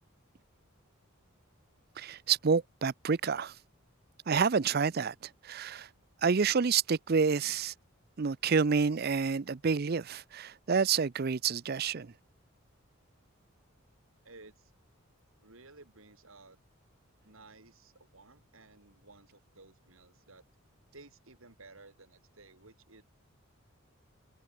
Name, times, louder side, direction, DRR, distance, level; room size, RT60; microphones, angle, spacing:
voice 1, 2.0-3.5 4.3-5.1 5.4-5.9 6.2-7.7 8.2-12.1, right 5 dB, 45° right, 0.5 m, -28 dB
voice 2, 14.2-14.7 15.4-16.6 17.2-20.5 20.9-23.0, right 3 dB, 75° right, 3.8 m, -56 dB
head